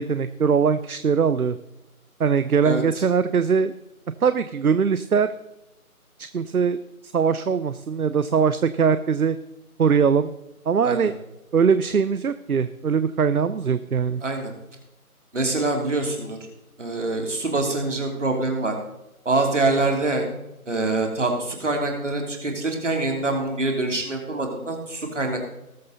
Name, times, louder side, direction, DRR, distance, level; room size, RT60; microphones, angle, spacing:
voice 1, 0.0-1.6 2.2-3.7 4.2-5.3 6.2-6.8 7.1-9.4 9.8-10.3 10.7-11.1 11.5-14.2, right 6 dB, 70° right, 13 dB, 0.7 m, -21 dB
voice 2, 2.6-3.0 10.8-11.1 14.2-14.5 15.3-16.4 16.8-18.7 19.2-20.2 20.7-25.5, right 2 dB, 50° right, 2 dB, 3.2 m, -25 dB
19.5 x 6.6 x 4.0 m, 0.93 s
figure-of-eight pair, 175°, 45 cm